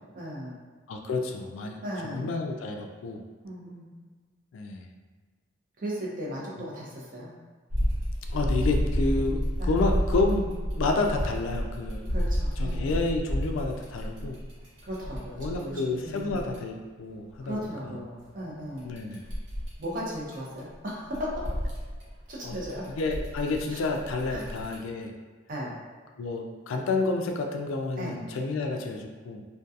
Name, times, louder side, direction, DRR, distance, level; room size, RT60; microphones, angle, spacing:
voice 1, 0.1-0.6 1.8-2.3 3.4-3.9 5.8-7.3 9.6-9.7 12.1-13.0 14.8-16.4 17.4-18.9 19.8-21.6 22.3-22.9 23.7-23.8 24.3-24.4 25.5-25.8 28.0-28.2, equal, 45° right, -5 dB, 0.6 m, -36 dB
voice 2, 0.9-3.2 4.5-4.9 8.3-12.1 12.6-14.4 15.4-18.0 18.8-19.2 22.4-22.6 23.0-25.1 26.2-29.4, left 3 dB, 85° left, 3 dB, 0.3 m, -30 dB
sound 1, 7.7-16.6 18.8-20.6 20.9-24.7, equal, 85° right, 0.8 m, -30 dB
2.6 x 2.2 x 2.3 m, 1.4 s
head